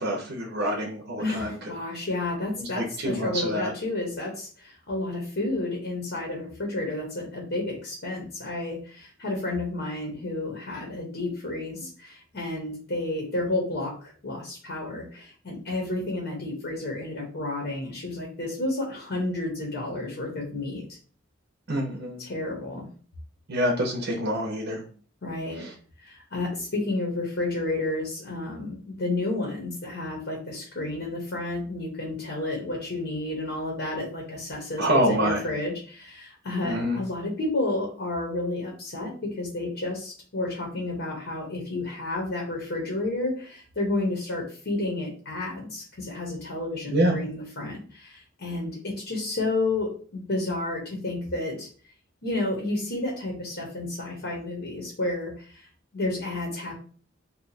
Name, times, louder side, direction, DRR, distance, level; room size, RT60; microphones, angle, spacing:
voice 1, 0.0-1.6 2.6-3.7 21.7-22.2 23.5-24.8 25.5-25.7 34.8-35.4 36.6-37.0 46.9-47.1, equal, 55° right, 0 dB, 0.7 m, -26 dB
voice 2, 1.2-21.0 22.2-22.9 25.2-25.7 26.0-51.7 52.2-55.7 55.9-56.7, left 2 dB, 55° left, 0 dB, 0.9 m, -31 dB
2.8 x 2.3 x 4.0 m, 0.43 s
head